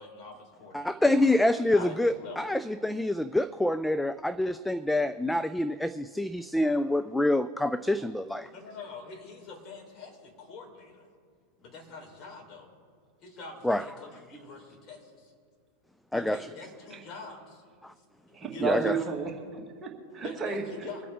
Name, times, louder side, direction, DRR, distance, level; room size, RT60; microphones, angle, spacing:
voice 1, 0.0-1.0 1.7-2.5 8.5-11.0 11.6-12.7 13.2-15.3 16.1-17.6 18.3-18.9 20.2-21.0, left 4 dB, 35° left, 0 dB, 3.7 m, -45 dB
voice 2, 0.7-8.5 13.6-13.9 16.1-16.4 17.8-17.9 18.6-18.9, left 1 dB, 5° left, 13 dB, 0.4 m, -26 dB
voice 3, 18.3-20.9, right 6 dB, 20° right, 0 dB, 2.1 m, -33 dB
24.0 x 8.3 x 3.5 m, 2.1 s
figure-of-eight pair, 90°, 0 cm